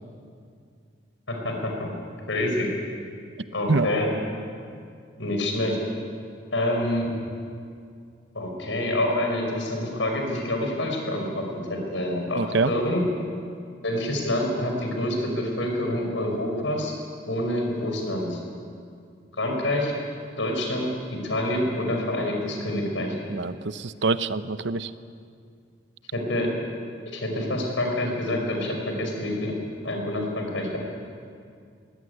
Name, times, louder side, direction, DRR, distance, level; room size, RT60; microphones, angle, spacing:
voice 1, 1.3-1.9 2.3-2.7 3.5-4.1 5.2-5.8 6.5-7.1 8.3-13.1 13.8-16.9 17.3-18.4 19.4-19.9 20.4-23.2 26.1-26.5 27.1-29.5 29.8-30.8, left 1 dB, 85° left, 2 dB, 5.3 m, -27 dB
voice 2, 12.3-12.7 23.3-24.9, right 3 dB, 70° right, 13 dB, 0.8 m, -25 dB
20.5 x 18.0 x 9.8 m, 2.3 s
head